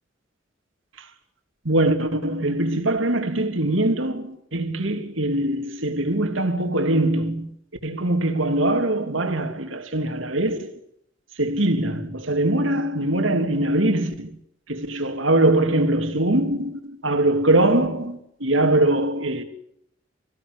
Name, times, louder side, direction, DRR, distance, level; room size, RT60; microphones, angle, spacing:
voice 1, 1.6-7.5 7.8-10.7 11.4-14.3 14.7-19.4, right 1 dB, 85° right, 3.1 m, -22 dB
25.5 x 16.5 x 9.8 m
head